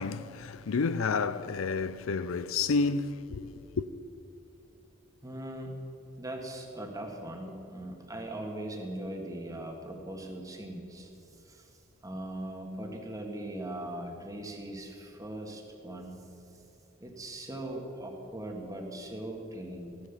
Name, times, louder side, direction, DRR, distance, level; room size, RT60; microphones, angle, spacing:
voice 1, 0.0-3.9, left 4 dB, 80° left, 0.5 m, -30 dB
voice 2, 5.2-5.7 6.2-11.1 11.4-11.7 12.0-16.2 17.0-20.0, right 1 dB, 15° right, 1.9 m, -40 dB
16.0 x 11.5 x 7.2 m
head